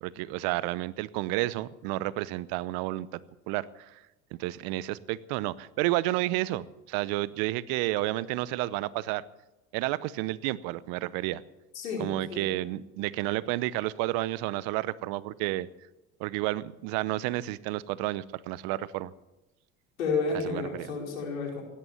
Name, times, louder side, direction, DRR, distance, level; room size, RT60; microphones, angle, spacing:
voice 1, 0.0-3.2 3.5-4.0 4.3-9.2 9.7-11.4 12.0-15.7 16.2-19.1 20.4-20.9, right 17 dB, 65° right, 19 dB, 0.9 m, -31 dB
voice 2, 11.7-12.4 20.0-21.6, left 4 dB, 90° left, -1 dB, 5.0 m, -31 dB
17.0 x 11.5 x 7.3 m, 0.98 s
hypercardioid pair, 75°, 40 cm